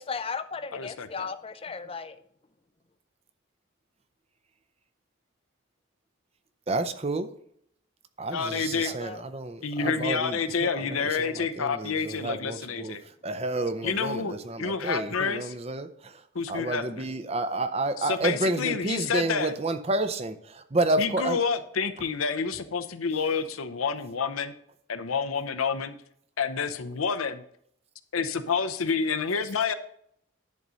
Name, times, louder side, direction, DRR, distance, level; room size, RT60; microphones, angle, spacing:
voice 1, 0.0-2.2 8.8-9.2, left 5 dB, 25° left, 11 dB, 0.5 m, -36 dB
voice 2, 0.7-1.3 8.3-8.9 9.6-13.0 13.8-15.5 16.3-17.0 18.0-19.5 21.0-24.5 24.9-25.9 26.4-27.4 28.1-29.7, left 5 dB, 85° left, 9 dB, 0.7 m, -29 dB
voice 3, 6.7-7.3 8.2-13.0 13.2-16.2 16.5-21.4, right 2 dB, 30° right, 10 dB, 0.6 m, -30 dB
10.5 x 4.1 x 6.3 m, 0.68 s
head